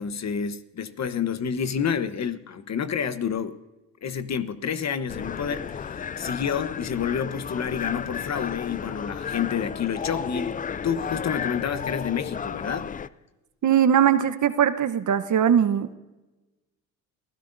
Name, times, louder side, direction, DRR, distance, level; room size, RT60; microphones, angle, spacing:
voice 1, 0.0-3.6 4.0-12.9, left 7 dB, 40° left, 1.2 m, -29 dB
sound 1, 5.1-13.1, left 7 dB, 20° left, 0.4 m, -33 dB
voice 2, 13.6-15.9, right 9 dB, 45° right, 1.1 m, -20 dB
28.5 x 16.0 x 2.7 m
hypercardioid pair, 70°, 42 cm